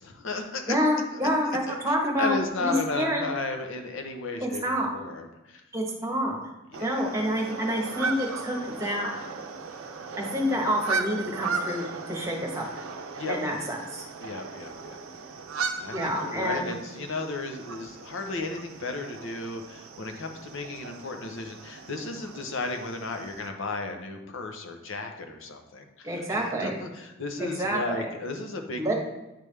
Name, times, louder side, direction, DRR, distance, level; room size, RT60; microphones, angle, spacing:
voice 1, 0.0-0.8 1.1-5.6 6.7-7.4 13.1-13.4 14.2-15.2 15.7-28.9, left 3 dB, 65° left, 5 dB, 0.8 m, -35 dB
voice 2, 0.7-2.4 2.6-3.2 4.4-4.9 5.7-6.4 6.8-9.1 10.2-12.6 13.3-14.1 15.9-16.8 26.0-26.8 27.4-28.1 28.8-28.9, equal, 15° right, 0 dB, 1.1 m, -28 dB
sound 1, 6.7-23.5, right 4 dB, 80° right, 0.6 m, -37 dB
9.0 x 3.4 x 3.3 m, 0.96 s
head